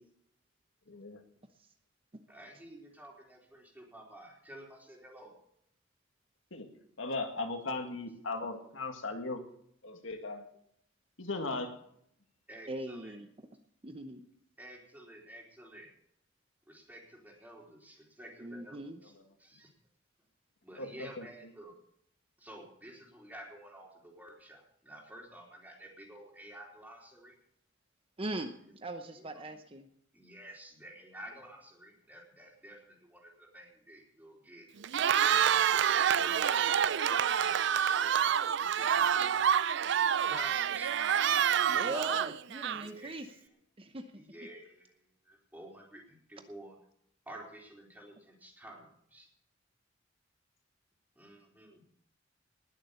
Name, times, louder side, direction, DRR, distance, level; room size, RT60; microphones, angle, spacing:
voice 1, 0.9-1.2 6.5-6.7 7.0-9.4 9.8-10.5 11.2-11.8 20.8-21.3, left 3 dB, 85° left, 5 dB, 2.0 m, -37 dB
voice 2, 2.3-5.3 12.5-13.2 14.6-15.9 16.7-19.1 19.4-19.7 20.6-21.7 22.4-27.4 29.1-29.3 30.1-34.7 35.2-39.5 40.2-40.9 41.8-42.2 42.7-43.3 44.1-46.7 47.3-49.3 51.2-51.8, right 1 dB, 10° right, -2 dB, 4.2 m, -50 dB
voice 3, 12.7-13.3 13.8-14.2 18.4-19.0 28.2-29.9 41.7-43.3 43.8-44.1, right 2 dB, 30° right, 7 dB, 0.8 m, -40 dB
Cheering, 34.8-43.1, right 8 dB, 65° right, 0.4 m, -27 dB
20.0 x 7.4 x 7.0 m, 0.72 s
head